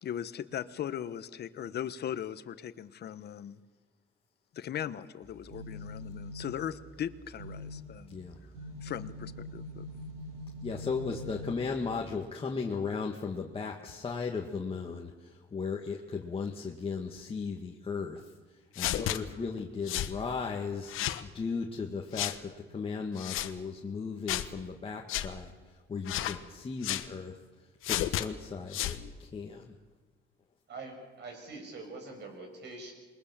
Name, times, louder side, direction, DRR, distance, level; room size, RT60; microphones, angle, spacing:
voice 1, 0.0-3.6 4.5-8.2 8.8-9.9, left 10 dB, 50° left, 14 dB, 1.1 m, -38 dB
sound 1, 5.2-12.1, left 1 dB, 75° right, 6.4 m, -44 dB
voice 2, 10.6-18.3 18.8-21.0 21.2-25.5 25.9-27.4 27.9-29.7, left 5 dB, 25° left, 0 dB, 1.8 m, -36 dB
sound 2, 18.8-19.2 19.9-20.1 20.9-21.2 22.1-22.4 23.2-23.5 24.3-24.5 25.1-25.3 26.1-26.4 26.8-27.1 27.8-28.3 28.7-29.0, left 13 dB, 80° left, 1.3 m, -32 dB
voice 3, 30.7-32.9, right 3 dB, 55° right, 4 dB, 7.3 m, -44 dB
27.0 x 21.5 x 7.5 m, 1.4 s
cardioid pair, 125°, 21 cm